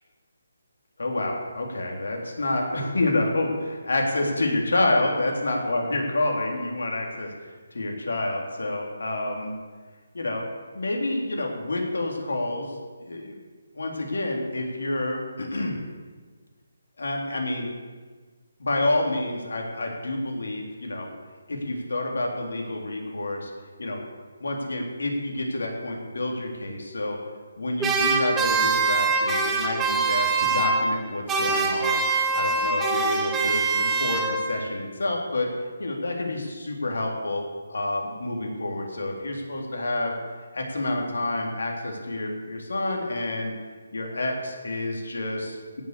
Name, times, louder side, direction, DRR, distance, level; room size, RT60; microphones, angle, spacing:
voice 1, 1.0-9.5 10.1-10.5 10.7-12.7 13.0-13.4 13.7-15.8 17.0-17.7 18.6-21.1 21.5-23.5 23.8-24.1 24.4-27.3 27.6-32.0 32.3-35.5 35.8-40.1 40.5-43.5 43.9-45.8, left 2 dB, 80° left, 0 dB, 3.6 m, -28 dB
sound 1, 27.8-31.0 31.3-34.7, right 4 dB, 10° right, 1.1 m, -24 dB
17.0 x 7.4 x 6.9 m, 1.5 s
hypercardioid pair, 165°, 0 cm